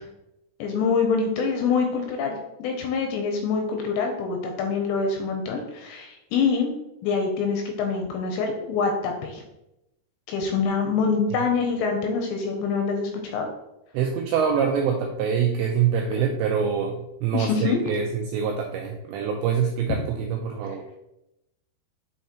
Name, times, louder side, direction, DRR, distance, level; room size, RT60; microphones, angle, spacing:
voice 1, 0.6-6.7 7.0-9.4 10.3-13.5 17.3-17.8, left 5 dB, 85° left, 3 dB, 2.7 m, -25 dB
voice 2, 13.9-20.8, right 7 dB, 90° right, 2 dB, 2.5 m, -25 dB
7.9 x 4.0 x 3.0 m, 0.88 s
omnidirectional pair, 5.6 m